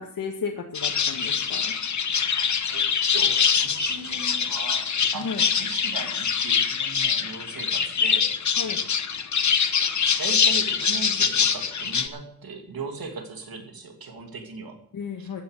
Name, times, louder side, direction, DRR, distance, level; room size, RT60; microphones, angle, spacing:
voice 1, 0.0-1.7 5.1-5.4 8.6-8.8 14.9-15.4, left 5 dB, 70° left, 1 dB, 1.8 m, -33 dB
sound 1, 0.7-12.1, left 6 dB, 55° left, 1.1 m, -24 dB
voice 2, 2.6-4.9 5.1-8.3 10.2-14.8 15.2-15.3, right 5 dB, 80° right, 3 dB, 2.7 m, -38 dB
15.0 x 10.0 x 6.6 m, 0.70 s
wide cardioid pair, 165°, 35 cm